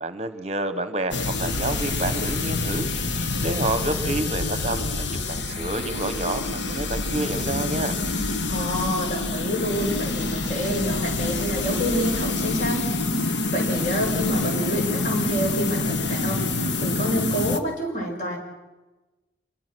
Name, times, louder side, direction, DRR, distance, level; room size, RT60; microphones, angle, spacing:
voice 1, 0.0-2.9 3.4-7.9, right 2 dB, 35° right, 11 dB, 1.0 m, -29 dB
sound 1, 1.1-17.6, left 3 dB, 85° left, 1.4 m, -26 dB
voice 2, 8.5-12.8 13.5-16.4 16.8-18.4, equal, 40° left, 1 dB, 5.8 m, -28 dB
26.5 x 22.5 x 6.1 m, 1.1 s
head